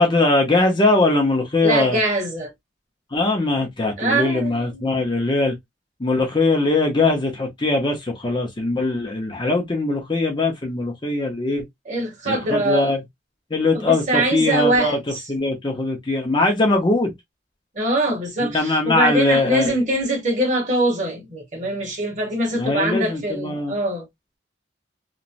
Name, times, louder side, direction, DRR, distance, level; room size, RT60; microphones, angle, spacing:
voice 1, 0.0-2.0 3.1-5.6 6.0-11.6 12.3-13.0 13.5-15.0 15.3-17.1 18.4-19.7 22.5-23.7, left 2 dB, 25° left, 0.6 m, -21 dB
voice 2, 1.6-2.5 4.0-5.0 11.9-12.9 13.7-15.2 17.7-24.1, right 1 dB, 40° right, 1.1 m, -23 dB
3.0 x 2.1 x 2.5 m
head